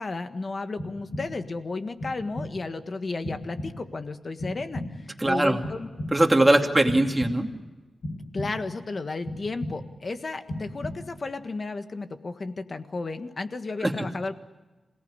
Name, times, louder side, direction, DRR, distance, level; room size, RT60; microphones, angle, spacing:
voice 1, 0.0-5.9 8.3-14.4, left 3 dB, 40° left, 8 dB, 1.6 m, -33 dB
sound 1, 0.8-1.6 2.0-2.7 3.2-4.0 4.4-5.2 5.6-6.4 6.9-7.7 8.0-8.8 9.3-10.1 10.5-11.3, left 1 dB, 55° left, 6.9 m, -36 dB
voice 2, 5.2-5.6 6.1-7.5 13.8-14.1, right 1 dB, 10° right, 2 dB, 2.6 m, -21 dB
27.5 x 18.5 x 9.9 m, 1.2 s
wide cardioid pair, 125°, 0 cm